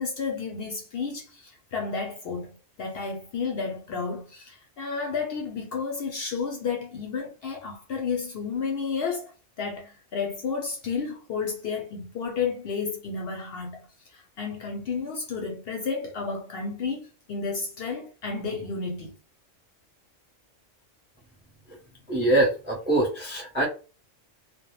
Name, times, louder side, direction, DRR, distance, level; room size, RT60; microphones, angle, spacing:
voice 1, 0.0-9.3 9.6-19.1, left 5 dB, 60° left, 0.7 m, -32 dB
voice 2, 22.1-23.6, right 1 dB, 15° right, 0.5 m, -24 dB
2.1 x 2.0 x 3.0 m
omnidirectional pair, 1.3 m